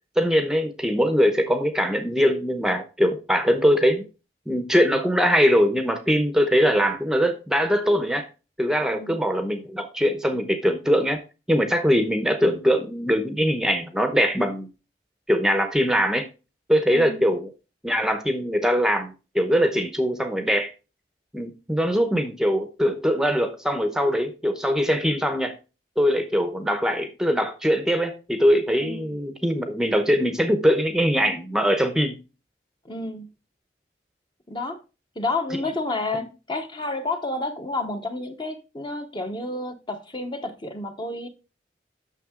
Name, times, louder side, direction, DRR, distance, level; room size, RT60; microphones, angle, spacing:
voice 1, 0.2-4.0 4.5-8.3 8.6-11.2 11.5-14.7 15.3-16.2 16.7-17.5 17.8-20.7 21.3-25.5 26.0-32.2, equal, 5° right, 0.8 m, -22 dB
voice 2, 8.8-9.2 16.9-17.2 28.8-29.2 32.8-33.3 34.5-34.8 35.1-41.3, left 2 dB, 25° left, 1.0 m, -30 dB
9.2 x 6.5 x 3.7 m
head